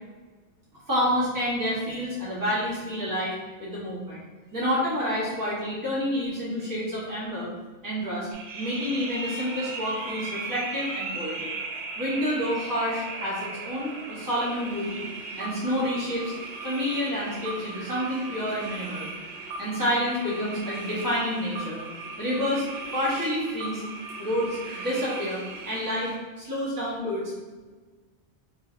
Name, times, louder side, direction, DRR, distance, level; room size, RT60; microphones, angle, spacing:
voice 1, 0.9-3.3 3.6-4.2 4.5-7.5 7.8-8.3 8.5-11.5 12.0-15.0 15.4-16.3 16.6-19.1 19.6-21.8 22.2-22.6 22.9-23.8 24.2-25.4 25.6-27.3, equal, 20° right, -8 dB, 1.1 m, -28 dB
sound 1, 8.3-26.2, right 3 dB, 70° right, 0.9 m, -37 dB
3.6 x 3.3 x 2.5 m, 1.3 s
omnidirectional pair, 1.2 m